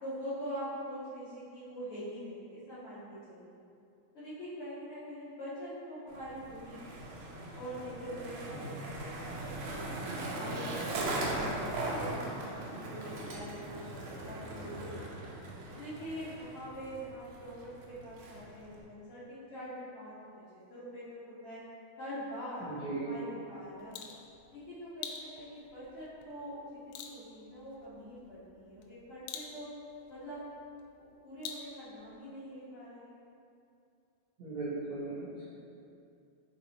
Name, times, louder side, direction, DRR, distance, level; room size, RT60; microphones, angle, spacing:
voice 1, 0.0-3.6 4.1-7.2 7.5-10.0 10.4-15.4 15.7-21.6 22.0-24.0 24.5-29.7 30.1-30.4 31.2-33.2, equal, 60° left, -12 dB, 1.6 m, -44 dB
Skateboard, 6.1-18.8, right 2 dB, 75° right, 1.9 m, -39 dB
voice 2, 22.6-23.1 34.4-35.4, right 3 dB, 90° right, -10 dB, 1.1 m, -37 dB
sound 1, 23.6-32.2, left 7 dB, 80° left, 2.1 m, -49 dB
5.8 x 4.0 x 4.0 m, 2.6 s
omnidirectional pair, 4.2 m